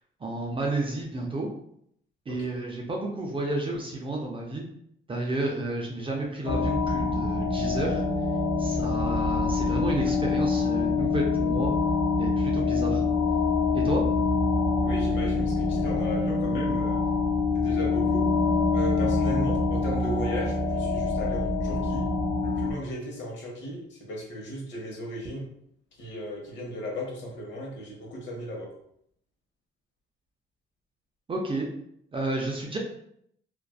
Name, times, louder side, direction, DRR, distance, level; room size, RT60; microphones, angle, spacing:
voice 1, 0.2-1.5 2.3-4.6 5.1-8.0 8.6-11.7 12.2-13.0 13.7-14.0 31.3-31.7 32.1-32.8, right 2 dB, 25° right, -1 dB, 0.5 m, -31 dB
sound 1, 6.4-22.7, left 3 dB, 50° left, 0.4 m, -25 dB
voice 2, 14.8-17.0 17.5-18.2 18.7-22.0 22.4-25.4 26.0-28.7, equal, 65° left, -1 dB, 0.9 m, -35 dB
2.5 x 2.2 x 2.3 m, 0.71 s
cardioid pair, 90°, 20 cm